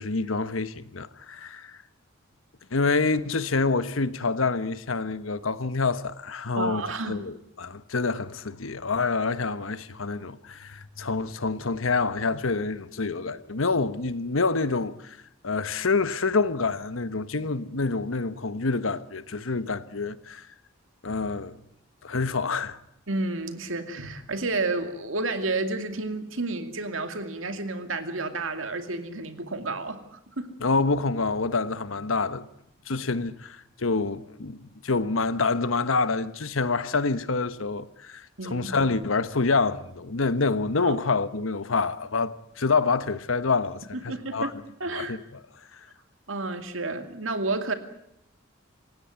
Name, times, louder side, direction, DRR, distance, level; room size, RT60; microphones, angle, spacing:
voice 1, 0.0-1.8 2.7-15.2 15.4-20.5 21.0-21.5 22.0-22.8 30.6-32.5 32.9-44.5 44.9-45.4 45.7-45.8, left 4 dB, 80° left, 1.2 m, -27 dB
voice 2, 6.6-7.2 23.1-30.5 38.4-38.7 40.8-40.9 43.9-44.5 44.8-45.2 46.3-47.7, right 3 dB, 75° right, 2.4 m, -31 dB
26.5 x 16.5 x 9.6 m
head